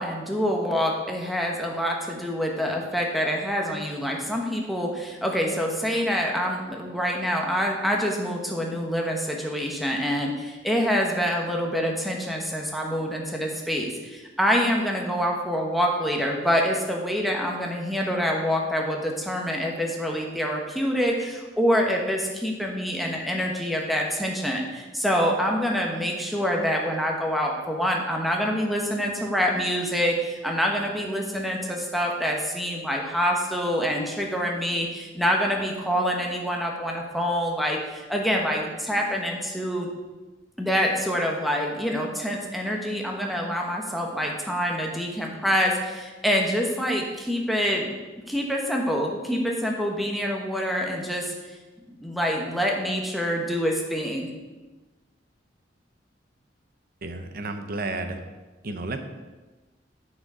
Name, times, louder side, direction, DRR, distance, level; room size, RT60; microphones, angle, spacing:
voice 1, 0.0-39.9 40.6-47.9 48.3-51.3 51.9-54.3, equal, ahead, 0 dB, 1.2 m, -26 dB
voice 2, 57.0-58.2 58.6-59.0, right 2 dB, 55° right, 7 dB, 0.8 m, -32 dB
8.0 x 6.4 x 5.0 m, 1.2 s
head